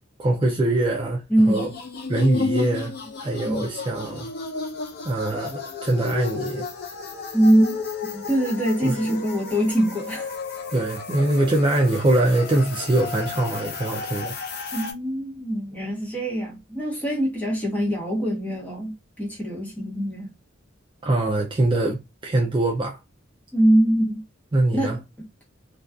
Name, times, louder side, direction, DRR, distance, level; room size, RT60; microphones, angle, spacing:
voice 1, 0.2-1.7 2.1-4.3 5.0-6.7 8.8-9.2 10.7-14.4 21.0-23.0 24.5-25.0, right 2 dB, 25° right, 0.3 m, -23 dB
voice 2, 1.3-1.7 3.4-3.6 7.3-7.8 8.1-10.3 14.7-20.3 23.5-24.2 24.7-24.9, right 1 dB, 10° left, 0.9 m, -23 dB
sound 1, 1.4-14.9, left 4 dB, 50° left, 0.5 m, -33 dB
2.5 x 2.3 x 2.2 m
head